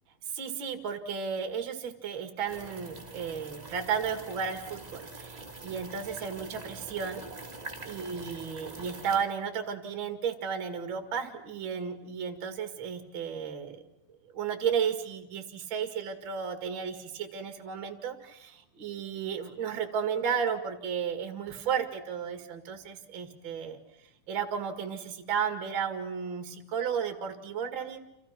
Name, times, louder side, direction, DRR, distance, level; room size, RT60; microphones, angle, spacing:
voice 1, 0.3-7.3 7.8-13.8 14.3-23.8 24.3-28.0, right 7 dB, 40° right, 7 dB, 2.5 m, -33 dB
sound 1, 2.5-9.2, right 2 dB, 10° right, 2.4 m, -44 dB
29.5 x 28.5 x 6.0 m, 0.83 s
omnidirectional pair, 4.2 m